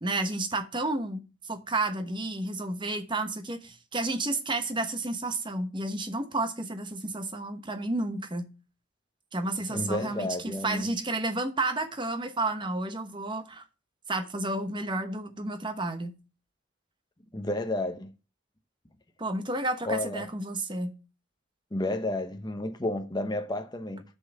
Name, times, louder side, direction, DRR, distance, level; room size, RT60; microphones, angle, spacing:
voice 1, 0.0-8.5 9.3-13.6 14.1-16.2 19.2-21.0, right 2 dB, 25° right, 1.0 m, -31 dB
voice 2, 9.7-10.9 17.3-18.1 19.9-20.3 21.7-24.0, left 1 dB, 20° left, 0.8 m, -31 dB
7.0 x 5.6 x 7.0 m
head